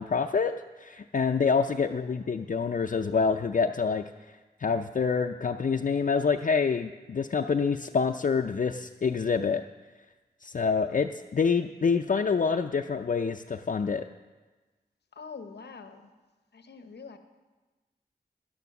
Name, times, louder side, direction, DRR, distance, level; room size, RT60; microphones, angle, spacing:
voice 1, 0.0-9.6 10.4-14.1, left 5 dB, 50° left, 4 dB, 0.5 m, -27 dB
voice 2, 1.7-2.6 15.1-16.1 16.5-17.2, left 5 dB, 85° left, 8 dB, 0.9 m, -46 dB
11.5 x 9.4 x 6.0 m, 1.2 s
cardioid pair, 45°, 17 cm